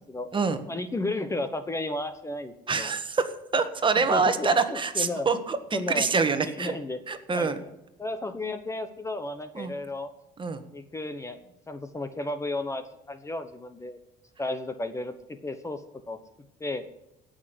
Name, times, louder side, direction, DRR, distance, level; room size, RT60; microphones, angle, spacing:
voice 1, 0.7-3.0 4.1-5.3 5.7-6.1 6.6-7.0 7.3-7.7 8.0-10.1 10.7-14.0 14.4-15.8 16.1-16.2 16.6-16.8, left 2 dB, 15° left, 10 dB, 1.1 m, -33 dB
voice 2, 2.7-5.6 5.9-6.7 7.1-7.6 9.5-9.7 10.4-10.6, right 4 dB, 30° right, 9 dB, 1.6 m, -25 dB
17.0 x 6.5 x 8.0 m, 0.90 s
cardioid pair, 110°, 17 cm